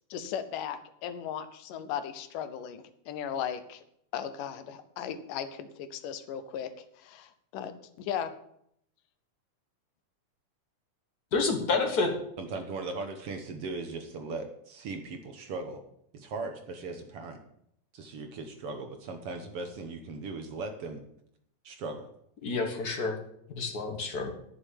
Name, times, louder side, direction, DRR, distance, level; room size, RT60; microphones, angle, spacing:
voice 1, 0.1-3.8 4.1-6.7 7.0-8.3, left 9 dB, 85° left, 11 dB, 2.5 m, -37 dB
voice 2, 11.3-12.1 22.4-23.2 23.5-24.3, left 3 dB, 45° left, 4 dB, 1.3 m, -28 dB
voice 3, 12.4-15.8 16.1-17.4 17.9-21.0 21.6-22.1, right 3 dB, 60° right, 6 dB, 1.7 m, -38 dB
10.0 x 6.9 x 8.8 m, 0.72 s
omnidirectional pair, 3.6 m